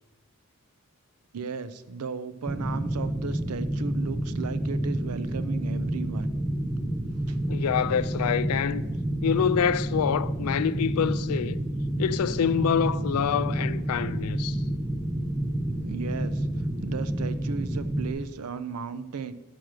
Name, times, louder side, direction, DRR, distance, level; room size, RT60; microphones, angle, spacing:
voice 1, 1.3-6.3 7.3-7.4 15.8-19.3, right 5 dB, 90° right, 0.5 m, -35 dB
sound 1, 2.5-18.1, right 1 dB, 10° right, 0.6 m, -29 dB
voice 2, 7.5-8.9 9.2-11.6 12.0-14.6, left 7 dB, 85° left, 0.4 m, -26 dB
6.5 x 6.0 x 6.1 m
head